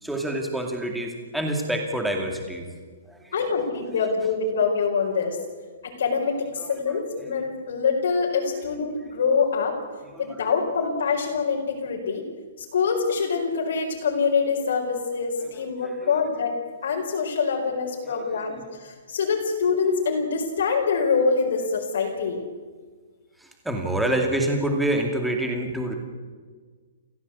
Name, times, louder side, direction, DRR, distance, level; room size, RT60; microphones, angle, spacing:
voice 1, 0.0-2.6 3.1-3.3 3.9-4.0 6.6-7.3 10.1-10.5 15.5-16.2 18.0-18.5 23.4-25.9, right 1 dB, ahead, 2 dB, 2.4 m, -28 dB
voice 2, 3.3-5.4 5.8-9.8 10.2-12.2 12.6-22.4, left 5 dB, 65° left, -1 dB, 4.8 m, -25 dB
29.5 x 15.5 x 8.4 m, 1.5 s
hypercardioid pair, 175°, 0 cm